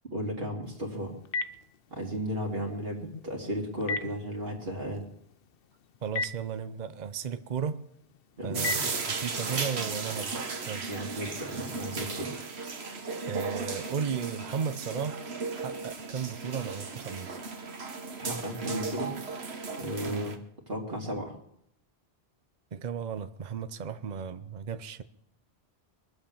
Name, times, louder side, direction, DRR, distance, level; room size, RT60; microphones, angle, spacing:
voice 1, 0.0-1.1 1.9-5.0 8.4-8.8 10.9-12.3 18.2-19.2 19.8-20.4 20.7-21.4, equal, 65° right, 0 dB, 2.8 m, -34 dB
Telephone, 0.6-9.5, left 3 dB, 65° left, 0.9 m, -40 dB
voice 2, 6.0-7.8 8.4-8.9 9.2-10.8 13.3-15.2 15.5-17.4 20.1-20.3 22.7-25.0, right 7 dB, 45° right, 11 dB, 0.8 m, -35 dB
sound 1, 8.5-20.4, right 4 dB, 85° right, 1.6 m, -35 dB
22.5 x 7.8 x 7.2 m, 0.75 s
omnidirectional pair, 1.1 m